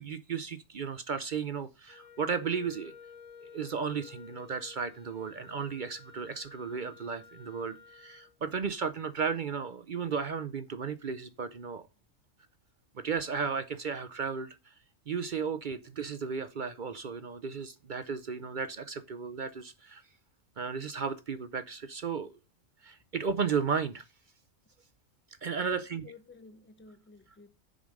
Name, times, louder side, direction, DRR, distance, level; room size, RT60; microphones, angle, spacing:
voice 1, 0.0-2.9 3.4-11.8 13.0-14.6 15.1-20.0 20.6-22.4 22.8-24.0 25.4-26.0, right 6 dB, 50° right, 0.6 m, -34 dB
Wind instrument woodwind instrument, 1.9-8.4, left 6 dB, 80° left, 1.4 m, -53 dB
voice 2, 25.6-27.5, left 4 dB, 10° left, 0.6 m, -53 dB
7.0 x 5.2 x 6.3 m
omnidirectional pair, 1.3 m